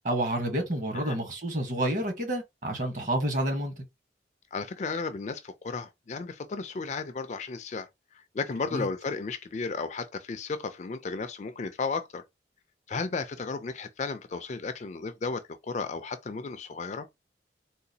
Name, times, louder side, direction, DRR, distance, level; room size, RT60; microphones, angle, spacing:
voice 1, 0.0-3.8 8.7-8.9, right 1 dB, 45° right, 1.1 m, -29 dB
voice 2, 4.5-7.9 8.3-12.2 12.9-17.1, left 4 dB, 40° left, 0.4 m, -34 dB
3.8 x 2.3 x 2.7 m
head